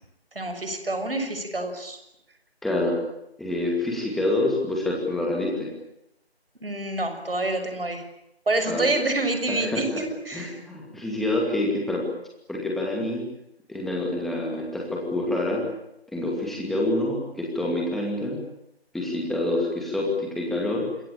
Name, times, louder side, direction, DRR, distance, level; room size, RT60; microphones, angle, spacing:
voice 1, 0.4-2.0 6.6-8.0 8.5-10.6, right 2 dB, 60° right, 7 dB, 6.8 m, -27 dB
voice 2, 2.6-2.9 3.4-5.7 8.7-8.9 9.5-9.8 10.3-12.0 12.5-13.2 13.7-15.6 16.1-18.4 18.9-20.9, left 1 dB, ahead, -1 dB, 2.5 m, -27 dB
27.0 x 21.0 x 8.9 m, 0.82 s
figure-of-eight pair, 155°, 32 cm